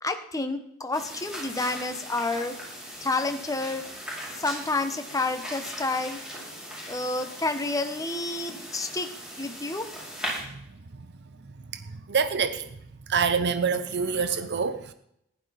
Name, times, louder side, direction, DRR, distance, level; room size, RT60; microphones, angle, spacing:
voice 1, 0.0-2.6 3.0-3.8 4.4-6.2 6.9-9.1 9.4-9.9, left 3 dB, 15° left, 1.0 m, -29 dB
sound 1, 0.9-10.4, equal, 5° right, 5.5 m, -39 dB
voice 2, 11.7-12.7 13.1-14.9, right 5 dB, 55° right, 0.7 m, -27 dB
15.0 x 11.5 x 4.1 m
head